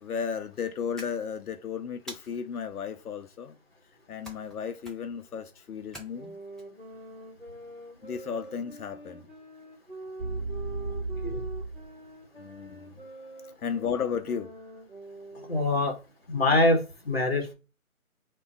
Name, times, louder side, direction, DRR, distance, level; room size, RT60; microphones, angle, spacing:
voice 1, 0.0-3.6 4.1-6.4 8.0-9.2 12.4-12.9 13.6-14.5, left 7 dB, 85° left, 0.5 m, -34 dB
sound 1, 1.0-1.6 2.1-2.7 4.2-4.6 4.8-5.2 5.9-6.6, equal, ahead, 0.4 m, -46 dB
sound 2, 6.1-15.8, right 1 dB, 35° right, 0.9 m, -45 dB
sound 3, 10.2-11.9, right 3 dB, 70° right, 0.6 m, -34 dB
voice 2, 15.5-15.9 16.3-16.8 17.0-17.5, left 2 dB, 45° left, 0.9 m, -24 dB
2.4 x 2.2 x 3.8 m
figure-of-eight pair, 170°, 43 cm